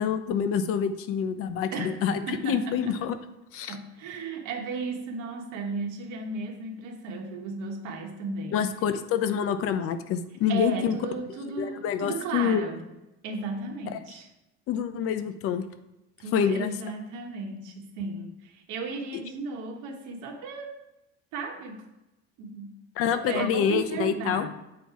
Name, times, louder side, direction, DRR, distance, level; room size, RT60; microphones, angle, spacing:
voice 1, 0.0-3.2 3.5-3.8 8.5-11.0 11.6-12.6 14.7-15.6 16.3-16.7 23.0-24.5, left 8 dB, 50° left, 10 dB, 0.6 m, -27 dB
voice 2, 1.7-3.0 3.7-8.7 10.5-12.8 13.2-14.3 16.2-20.7 21.3-21.8 22.4-22.7 23.1-24.5, right 4 dB, 90° right, 3 dB, 1.3 m, -35 dB
7.7 x 4.2 x 4.6 m, 0.94 s
cardioid pair, 175°, 29 cm